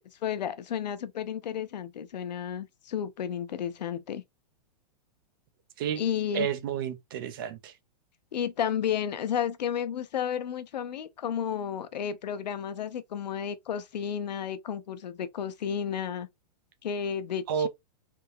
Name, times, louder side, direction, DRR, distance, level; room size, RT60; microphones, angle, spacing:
voice 1, 0.2-4.2 6.0-6.5 8.3-16.3 16.8-17.7, left 8 dB, 90° left, 0.8 m, -32 dB
voice 2, 6.3-7.8 17.5-17.7, right 8 dB, 35° right, 0.6 m, -30 dB
3.5 x 2.9 x 2.6 m
supercardioid pair, 170°, 21 cm